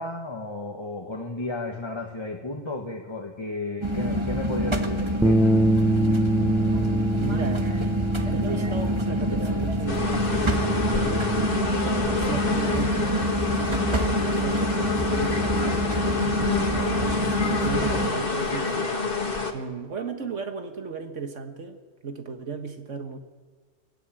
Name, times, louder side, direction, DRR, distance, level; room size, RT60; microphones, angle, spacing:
voice 1, 0.0-5.4, left 2 dB, 25° left, 2 dB, 1.5 m, -33 dB
sound 1, 3.8-18.1, equal, 25° right, 1.4 m, -26 dB
Bass guitar, 5.2-11.5, right 1 dB, ahead, 0.6 m, -25 dB
voice 2, 7.2-7.9 8.2-11.3 11.6-13.3 14.0-17.3 17.6-19.0 19.5-23.2, right 5 dB, 85° right, 6 dB, 1.7 m, -36 dB
sound 2, 9.9-19.5, left 4 dB, 50° left, 1.9 m, -28 dB
23.0 x 14.0 x 9.0 m, 1.4 s
omnidirectional pair, 1.2 m